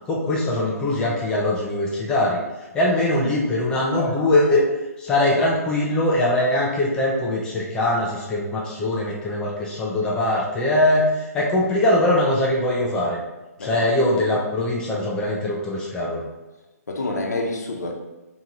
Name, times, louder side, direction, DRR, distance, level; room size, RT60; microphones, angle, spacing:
voice 1, 0.1-2.4 2.7-4.6 5.0-13.2 13.6-16.2, left 1 dB, 10° left, -3 dB, 0.5 m, -22 dB
voice 2, 3.7-4.1 11.4-11.5 13.6-14.0 16.9-17.9, left 2 dB, 85° left, 2 dB, 0.9 m, -28 dB
3.5 x 2.9 x 3.9 m, 1.1 s
hypercardioid pair, 160°, 9 cm